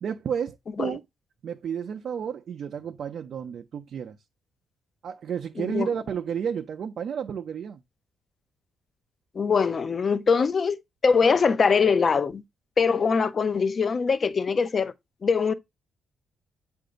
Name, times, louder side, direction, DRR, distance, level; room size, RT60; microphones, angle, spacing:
voice 1, 0.0-1.0 1.4-4.2 5.0-7.8, right 7 dB, 60° right, 0.5 m, -31 dB
voice 2, 9.3-10.8 11.0-12.4 12.8-14.9 15.2-15.5, left 5 dB, 40° left, 0.6 m, -22 dB
7.6 x 2.6 x 5.0 m
cardioid pair, 90°, 0 cm